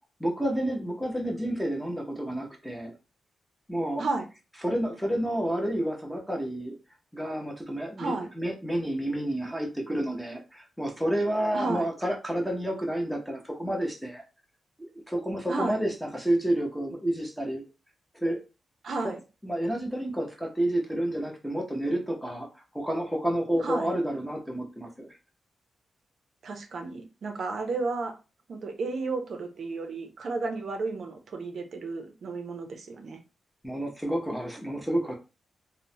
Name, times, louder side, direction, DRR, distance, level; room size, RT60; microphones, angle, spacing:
voice 1, 0.2-2.9 3.7-4.0 4.6-6.8 7.1-14.2 14.8-17.6 18.2-18.4 19.0-19.2 19.4-22.5 22.7-25.1 33.6-35.1, right 1 dB, ahead, 1 dB, 0.6 m, -30 dB
voice 2, 8.0-8.3 11.5-11.9 15.5-15.8 18.8-19.2 23.6-23.9 26.4-28.1 28.5-33.2, right 3 dB, 55° right, 5 dB, 0.5 m, -32 dB
3.0 x 2.0 x 2.6 m, 0.30 s
wide cardioid pair, 170°, 0 cm